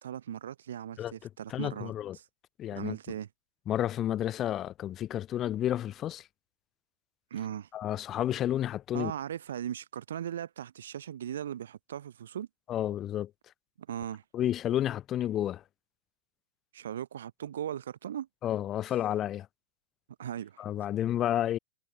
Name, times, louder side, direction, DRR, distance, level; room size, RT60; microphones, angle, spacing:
voice 1, 0.0-2.3 2.7-3.3 7.3-7.7 8.9-12.5 13.8-14.2 16.7-18.3 20.2-20.6, right 10 dB, 80° right, 0.6 m, -38 dB
voice 2, 1.5-2.2 2.6-3.0 3.7-6.3 7.7-9.1 12.7-13.3 14.3-15.6 18.4-19.5 20.6-21.6, left 12 dB, 30° left, 0.9 m, -31 dB
hypercardioid pair, 120°, 0 cm